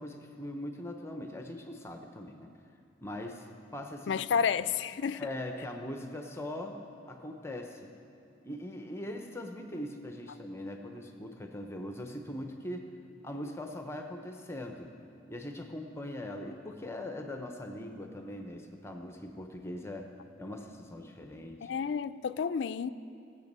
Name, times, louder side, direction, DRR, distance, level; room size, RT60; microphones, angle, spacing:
voice 1, 0.0-2.5 3.0-3.5 3.7-4.2 5.1-7.9 8.4-12.9 13.2-14.9 15.3-20.1 20.4-21.8, left 1 dB, 15° left, 0.7 m, -41 dB
voice 2, 4.1-5.2 21.6-22.9, left 6 dB, 70° left, 0.3 m, -30 dB
18.5 x 8.1 x 5.4 m
head